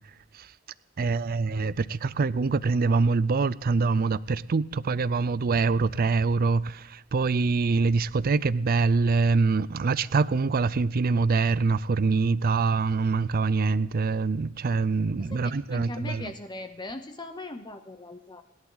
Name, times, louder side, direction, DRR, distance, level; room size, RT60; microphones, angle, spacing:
voice 1, 1.0-16.3, right 4 dB, 45° right, 0.5 m, -24 dB
voice 2, 15.7-18.4, left 2 dB, 20° left, 0.8 m, -39 dB
29.5 x 11.0 x 3.9 m
head